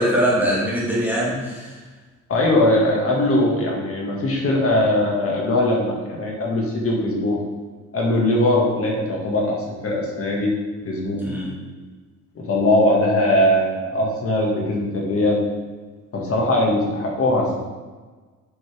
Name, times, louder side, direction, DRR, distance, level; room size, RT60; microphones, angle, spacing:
voice 1, 0.0-1.7 11.2-11.5, equal, 5° right, -8 dB, 2.2 m, -22 dB
voice 2, 2.3-7.4 7.9-10.5 10.8-11.2 12.4-15.4 16.1-17.6, left 1 dB, 50° left, -2 dB, 2.1 m, -20 dB
7.7 x 5.4 x 3.6 m, 1.4 s
cardioid pair, 90°, 30 cm